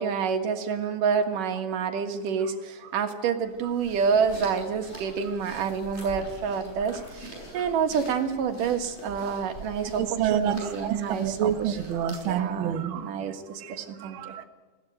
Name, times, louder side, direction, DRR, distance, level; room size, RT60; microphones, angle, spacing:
voice 1, 0.0-11.8 12.2-14.3, right 6 dB, 85° right, 6 dB, 3.2 m, -28 dB
sound 1, 3.4-12.5, right 1 dB, 20° left, 7.9 m, -44 dB
voice 2, 9.9-13.1 13.6-14.4, right 9 dB, 55° right, 7 dB, 1.6 m, -28 dB
20.5 x 17.0 x 9.2 m, 1.3 s
omnidirectional pair, 3.6 m